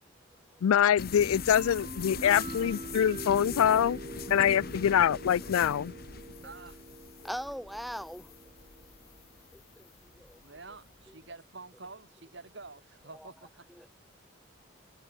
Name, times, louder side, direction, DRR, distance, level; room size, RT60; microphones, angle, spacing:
voice 1, 0.6-4.0 4.3-5.9, left 9 dB, 85° left, 0.3 m, -24 dB
sound 1, 1.0-11.1, left 4 dB, 45° left, 1.6 m, -42 dB
sound 2, 1.5-9.2, right 2 dB, 30° right, 1.4 m, -44 dB
voice 2, 6.4-6.8 10.4-13.5, right 3 dB, 55° right, 2.1 m, -48 dB
voice 3, 7.2-8.3 9.5-9.9 10.2-10.4 13.2-13.3 13.8-13.9, equal, ahead, 0.9 m, -40 dB
head